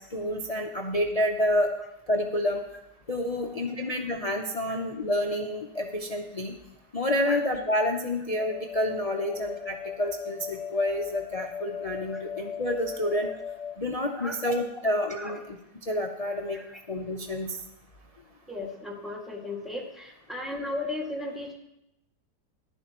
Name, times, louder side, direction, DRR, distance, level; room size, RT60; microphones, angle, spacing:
voice 1, 0.1-1.7 2.1-2.6 3.1-6.5 6.9-13.3 13.8-15.4 15.9-16.6 16.9-17.6, left 1 dB, 55° left, 2 dB, 0.4 m, -28 dB
voice 2, 3.4-3.9 4.7-4.8 7.2-7.4 8.2-8.3 9.3-9.4 12.1-12.2 14.1-14.3 14.7-15.4 16.3-16.8 18.5-21.5, left 2 dB, ahead, -2 dB, 2.0 m, -37 dB
sound 1, 8.4-13.8, left 7 dB, 80° left, 1.2 m, -38 dB
14.5 x 11.0 x 3.0 m, 0.85 s
omnidirectional pair, 1.8 m